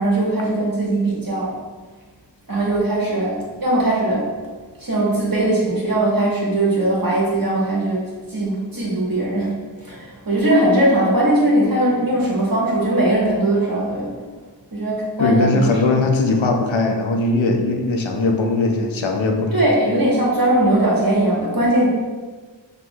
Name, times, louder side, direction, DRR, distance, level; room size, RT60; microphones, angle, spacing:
voice 1, 0.0-1.5 2.5-4.3 4.8-14.1 14.7-15.7 19.5-21.9, right 1 dB, 50° right, -5 dB, 1.4 m, -20 dB
voice 2, 15.2-19.6, left 3 dB, 85° left, 3 dB, 0.6 m, -19 dB
6.0 x 2.9 x 2.3 m, 1.4 s
wide cardioid pair, 50°, 45 cm